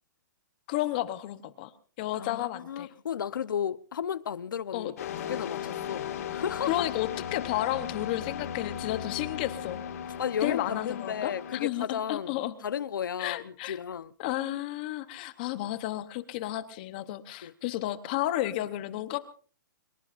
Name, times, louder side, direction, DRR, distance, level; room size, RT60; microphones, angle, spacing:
voice 1, 0.7-1.7 2.0-2.9 4.7-4.9 6.7-9.8 10.4-12.5 13.2-13.8 14.2-19.2, left 15 dB, 25° left, 0.9 m, -32 dB
voice 2, 2.1-6.8 10.2-14.1 17.4-17.5, left 8 dB, 75° left, 0.9 m, -34 dB
sound 1, 5.0-11.7, left 9 dB, 45° left, 2.0 m, -37 dB
24.0 x 21.5 x 2.6 m
hypercardioid pair, 175°, 11 cm